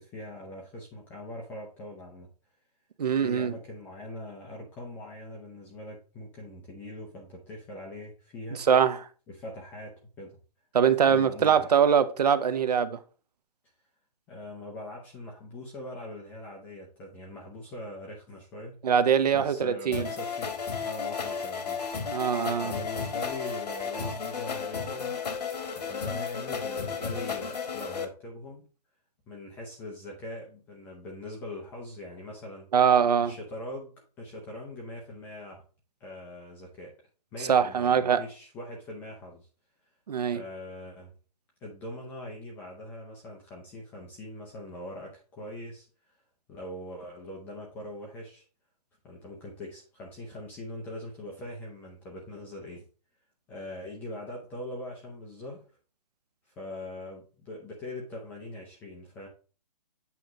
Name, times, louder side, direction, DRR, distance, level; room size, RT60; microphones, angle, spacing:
voice 1, 0.0-2.3 3.2-8.6 9.3-10.3 11.0-11.7 14.3-18.8 19.3-21.8 22.6-25.1 25.8-28.7 29.3-32.7 33.2-35.6 36.0-36.9 37.3-39.5 40.3-41.1 41.6-45.9 46.5-48.5 49.0-52.8 53.5-55.6 56.5-59.3, left 1 dB, 10° left, 0.6 m, -42 dB
voice 2, 3.0-3.5 8.7-9.0 10.7-13.0 18.8-20.1 22.1-22.7 32.7-33.3 37.5-38.2 40.1-40.4, right 7 dB, 70° right, 0.8 m, -23 dB
sound 1, 19.9-28.0, left 6 dB, 70° left, 1.6 m, -33 dB
8.3 x 3.0 x 5.2 m
hypercardioid pair, 170°, 21 cm